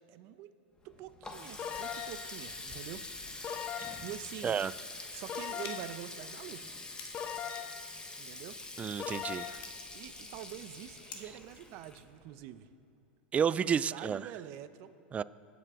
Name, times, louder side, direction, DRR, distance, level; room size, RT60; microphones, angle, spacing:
voice 1, 0.1-0.5 0.8-3.1 3.4-3.5 4.0-4.6 5.1-6.8 8.2-8.6 9.9-12.7 13.5-15.0, right 12 dB, 50° right, 11 dB, 0.8 m, -46 dB
Water tap faucet, 0.8-12.5, left 2 dB, 15° left, 1.4 m, -46 dB
sound 1, 1.6-2.3 3.4-4.2 5.3-6.0 7.1-7.9 9.0-9.6, left 8 dB, 30° left, 0.6 m, -39 dB
sound 2, 5.6-11.5, left 6 dB, 70° left, 1.9 m, -53 dB
voice 2, 8.8-9.6 13.3-14.3 15.1-15.2, right 7 dB, 20° right, 18 dB, 0.4 m, -31 dB
23.5 x 9.3 x 3.8 m, 2.9 s
hypercardioid pair, 110°, 6 cm